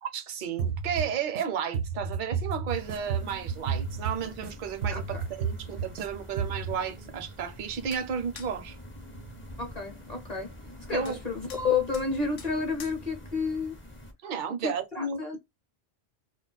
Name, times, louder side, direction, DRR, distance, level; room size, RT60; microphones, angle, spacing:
voice 1, 0.0-8.8 10.9-11.2 14.2-15.4, right 7 dB, 55° right, 0.7 m, -33 dB
sound 1, 0.6-1.4 1.7-4.5 4.8-6.1 6.4-6.8, right 6 dB, 85° right, 0.9 m, -32 dB
sound 2, 2.7-14.1, left 1 dB, 15° left, 0.4 m, -46 dB
voice 2, 4.9-5.2 9.6-10.5 10.9-13.8 14.6-15.4, left 5 dB, 45° left, 0.7 m, -30 dB
sound 3, 7.9-8.1 8.4-8.5 11.1-11.2 11.5-11.7 11.9-12.1 12.4-12.5 12.8-13.0, left 7 dB, 75° left, 0.8 m, -45 dB
2.3 x 2.1 x 3.9 m
omnidirectional pair, 1.1 m